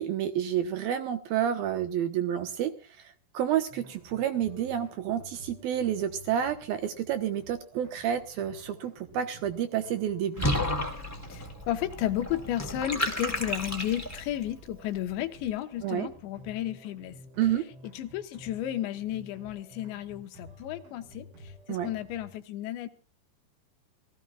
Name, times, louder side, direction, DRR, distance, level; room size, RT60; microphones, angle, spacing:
voice 1, 0.0-2.7 3.3-10.5 15.8-16.1 17.4-17.7 21.7-21.9, right 10 dB, 70° right, 8 dB, 2.5 m, -29 dB
sound 1, 3.5-22.4, right 1 dB, 85° right, 8.7 m, -51 dB
Water / Bathtub (filling or washing), 10.4-14.4, left 1 dB, 5° left, 2.0 m, -32 dB
voice 2, 11.3-17.2 17.9-22.9, left 12 dB, 80° left, 8 dB, 3.4 m, -33 dB
27.0 x 17.0 x 2.4 m, 0.35 s
omnidirectional pair, 5.2 m